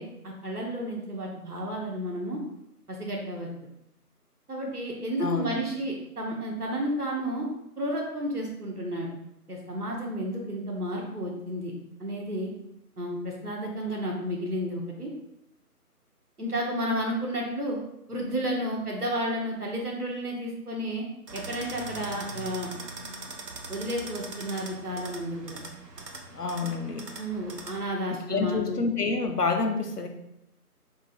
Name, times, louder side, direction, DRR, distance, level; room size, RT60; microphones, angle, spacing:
voice 1, 0.0-2.4 2.9-3.5 4.5-7.5 7.8-9.1 9.5-11.7 12.0-12.5 13.0-15.1 16.4-17.8 18.1-21.1 21.3-22.7 23.7-25.6 27.2-28.8, equal, 70° right, -1 dB, 1.4 m, -32 dB
voice 2, 5.2-5.6 26.3-27.1 28.3-30.1, left 4 dB, 75° left, 5 dB, 0.8 m, -28 dB
sound 1, 21.3-27.9, right 3 dB, 90° right, 0.8 m, -41 dB
3.7 x 3.0 x 4.3 m, 0.83 s
figure-of-eight pair, 160°, 47 cm